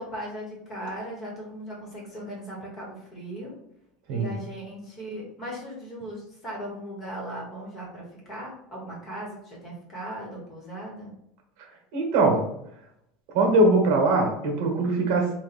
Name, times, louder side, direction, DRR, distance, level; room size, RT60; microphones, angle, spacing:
voice 1, 0.0-3.5 4.1-11.2, equal, 25° left, -2 dB, 1.4 m, -38 dB
voice 2, 11.9-12.4 13.3-15.3, right 2 dB, 55° right, 2 dB, 1.2 m, -21 dB
4.0 x 2.5 x 4.3 m, 0.78 s
supercardioid pair, 165°, 0 cm